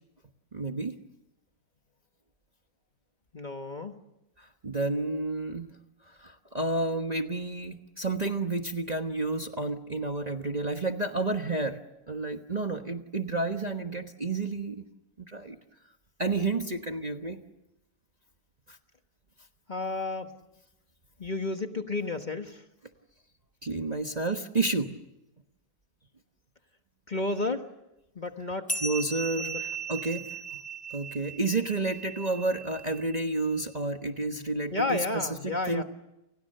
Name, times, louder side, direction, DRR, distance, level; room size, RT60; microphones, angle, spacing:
voice 1, 0.5-0.9 4.4-5.7 6.1-11.8 12.1-14.8 15.2-15.6 16.2-17.4 18.7-18.8 23.6-24.9 28.8-30.6 30.9-35.8, right 2 dB, 30° right, 5 dB, 1.2 m, -30 dB
voice 2, 3.3-3.9 19.7-20.3 21.2-22.6 27.1-27.6 28.1-28.7 29.4-29.6 34.7-35.8, left 2 dB, 30° left, 6 dB, 1.5 m, -31 dB
sound 1, 28.7-33.6, right 4 dB, 5° left, 0.9 m, -38 dB
29.5 x 28.5 x 6.7 m, 0.94 s
omnidirectional pair, 1.7 m